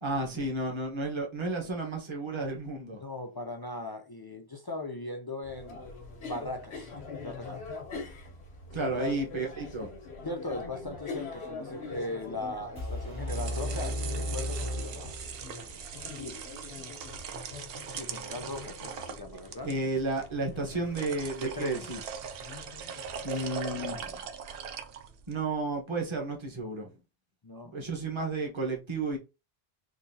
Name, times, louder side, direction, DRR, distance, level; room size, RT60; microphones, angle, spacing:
voice 1, 0.0-3.0 8.7-9.9 19.6-22.0 23.2-24.2 25.3-26.9 27.7-29.2, right 2 dB, 30° right, 1.1 m, -32 dB
voice 2, 3.0-5.8 6.2-6.9 7.2-7.7 8.8-9.2 10.2-15.3 15.6-15.7 16.1-16.4 17.9-19.7 21.4-21.9 27.4-27.8, left 2 dB, 40° left, 0.3 m, -39 dB
sound 1, 5.4-24.1, left 4 dB, 90° left, 1.2 m, -44 dB
sound 2, 12.8-15.7, equal, 55° right, 1.9 m, -35 dB
sound 3, 13.1-25.4, right 7 dB, 70° right, 0.8 m, -41 dB
3.9 x 2.8 x 2.7 m
omnidirectional pair, 1.1 m